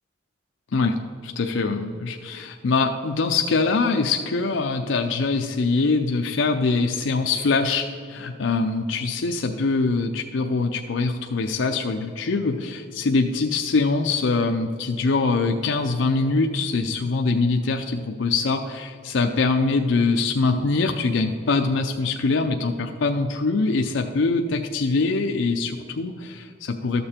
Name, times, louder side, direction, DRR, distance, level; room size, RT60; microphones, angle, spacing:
voice 1, 1.2-27.0, left 3 dB, 70° left, 4 dB, 0.5 m, -23 dB
12.5 x 6.9 x 4.3 m, 2.2 s
head